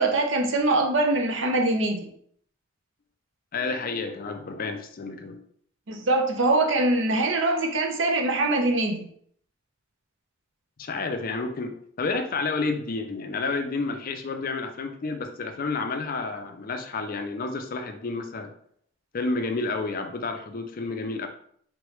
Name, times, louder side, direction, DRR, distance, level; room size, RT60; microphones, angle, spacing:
voice 1, 0.0-2.1 5.9-9.1, right 2 dB, 70° right, 2 dB, 0.7 m, -23 dB
voice 2, 3.5-5.4 10.8-18.5 19.1-21.3, left 3 dB, 45° left, 7 dB, 0.5 m, -30 dB
3.8 x 3.2 x 3.1 m, 0.63 s
head